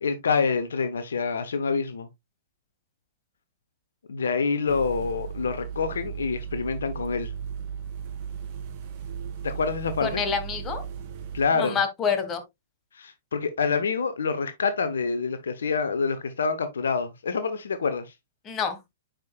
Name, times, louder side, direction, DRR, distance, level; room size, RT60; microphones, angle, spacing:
voice 1, 0.0-2.1 4.1-7.3 9.4-10.2 11.3-11.8 12.9-18.1, left 5 dB, 65° left, 0.8 m, -27 dB
sound 1, 4.7-11.5, right 7 dB, 35° right, 2.4 m, -36 dB
voice 2, 10.0-10.8 11.5-12.4 18.4-18.8, left 6 dB, 20° left, 1.4 m, -27 dB
9.2 x 5.1 x 2.3 m
figure-of-eight pair, 110°, 0 cm